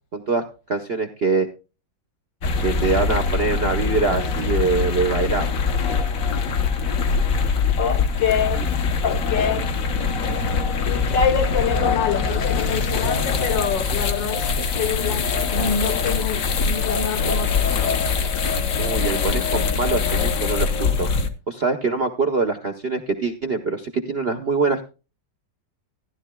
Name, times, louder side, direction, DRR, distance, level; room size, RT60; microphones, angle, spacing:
voice 1, 0.1-1.5 2.6-5.5 18.8-20.7 21.0-21.1 21.5-24.8, right 4 dB, 55° right, 0.6 m, -23 dB
sound 1, 2.4-21.3, left 5 dB, 55° left, 1.1 m, -23 dB
voice 2, 7.8-8.7 9.0-9.8 10.9-17.9, left 7 dB, 75° left, 1.8 m, -26 dB
15.0 x 11.0 x 2.2 m
omnidirectional pair, 2.0 m